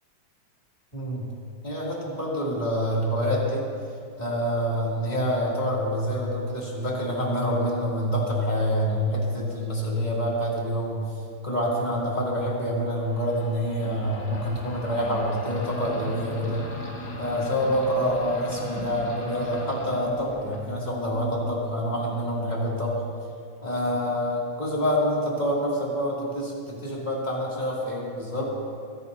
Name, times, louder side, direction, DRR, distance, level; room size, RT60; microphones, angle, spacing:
voice 1, 0.9-1.3 1.6-3.7 4.2-11.0 11.4-16.6 17.2-22.9 23.6-28.5, equal, 20° left, -5 dB, 2.6 m, -27 dB
sound 1, 13.0-22.3, left 2 dB, 55° left, 2.2 m, -39 dB
24.5 x 11.0 x 2.7 m, 2.3 s
omnidirectional pair, 2.3 m